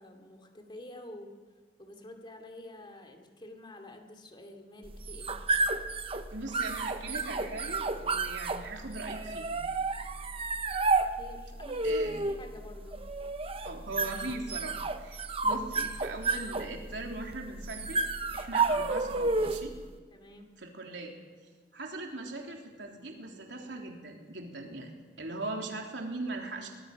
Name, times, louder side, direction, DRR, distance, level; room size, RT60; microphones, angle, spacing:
voice 1, 0.0-1.4 1.8-5.4 11.0-13.1 18.2-18.3 20.1-20.5, left 1 dB, 25° left, 4 dB, 2.7 m, -49 dB
sound 1, 4.9-19.8, right 3 dB, 35° right, 1.0 m, -31 dB
voice 2, 6.3-9.6 11.8-12.2 13.5-18.0 18.3-19.7 20.6-21.1 21.7-24.9 25.2-26.7, right 2 dB, 80° right, 1 dB, 3.5 m, -40 dB
23.5 x 20.0 x 6.1 m, 1.4 s
head